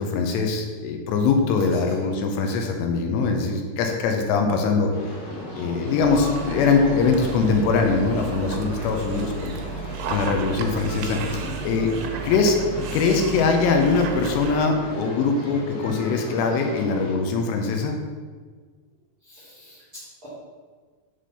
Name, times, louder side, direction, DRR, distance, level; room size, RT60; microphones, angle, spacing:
voice 1, 0.0-4.9 5.5-9.5 10.1-11.9 12.2-12.6 12.9-18.0, left 4 dB, 80° left, 3 dB, 2.8 m, -22 dB
sound 1, 4.9-17.1, left 1 dB, 55° left, 2.1 m, -36 dB
Dog, 6.0-14.6, right 6 dB, 85° right, 2.8 m, -34 dB
voice 2, 11.9-12.3 19.2-20.3, equal, 65° right, -10 dB, 1.2 m, -45 dB
7.5 x 3.4 x 5.5 m, 1.5 s
omnidirectional pair, 5.4 m